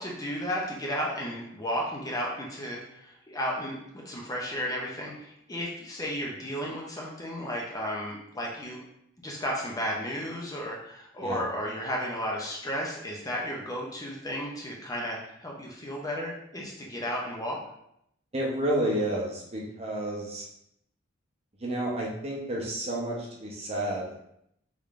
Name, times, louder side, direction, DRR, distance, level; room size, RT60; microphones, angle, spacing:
voice 1, 0.0-8.8 9.2-17.6, equal, 20° left, -2 dB, 0.5 m, -33 dB
voice 2, 18.3-20.5 21.6-24.2, right 1 dB, 30° right, -2 dB, 0.7 m, -30 dB
3.6 x 3.2 x 2.4 m, 0.76 s
head